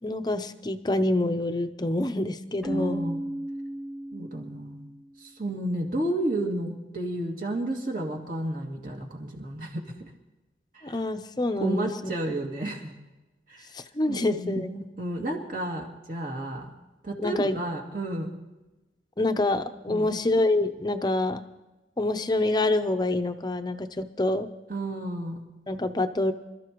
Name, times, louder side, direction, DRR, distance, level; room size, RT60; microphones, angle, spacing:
voice 1, 0.0-3.1 10.8-12.1 13.7-14.7 17.2-17.6 19.2-21.4 22.0-24.5 25.7-26.3, left 2 dB, 25° left, 8 dB, 0.7 m, -26 dB
Keyboard (musical), 2.6-5.3, right 1 dB, ahead, 1.2 m, -34 dB
voice 2, 2.7-3.2 4.1-4.9 5.2-10.1 10.7-10.9 11.6-12.9 13.5-13.7 14.1-16.7 17.0-18.3 19.9-20.1 24.7-25.4, right 1 dB, 50° right, 0 dB, 2.4 m, -32 dB
26.5 x 13.0 x 3.0 m, 1.1 s
head